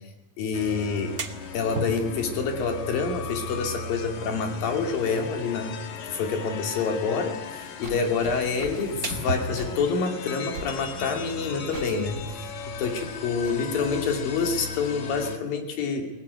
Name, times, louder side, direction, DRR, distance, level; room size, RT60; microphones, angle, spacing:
voice 1, 0.4-1.2 1.5-5.7 6.0-12.5 12.8-16.0, left 5 dB, 85° left, 4 dB, 4.3 m, -27 dB
sound 1, 0.5-15.4, left 5 dB, 60° left, 3.0 m, -37 dB
sound 2, 0.8-12.1, right 3 dB, 65° right, 0.9 m, -41 dB
sound 3, 7.6-13.6, right 2 dB, 30° right, 5.1 m, -43 dB
21.5 x 19.5 x 9.7 m, 1.0 s
omnidirectional pair, 3.9 m